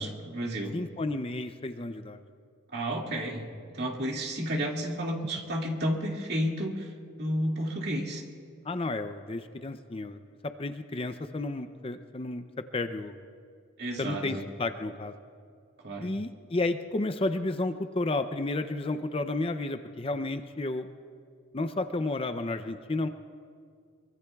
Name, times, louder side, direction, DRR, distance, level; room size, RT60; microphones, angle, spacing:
voice 1, 0.0-0.7 2.7-3.5 3.7-6.9 7.2-8.2 13.8-14.4 15.8-16.1, equal, 55° right, -1 dB, 2.2 m, -31 dB
voice 2, 0.7-2.2 8.6-13.2 14.0-15.1 16.0-20.9 21.5-23.1, left 2 dB, 30° left, 9 dB, 0.5 m, -32 dB
23.5 x 23.5 x 2.4 m, 2.1 s
head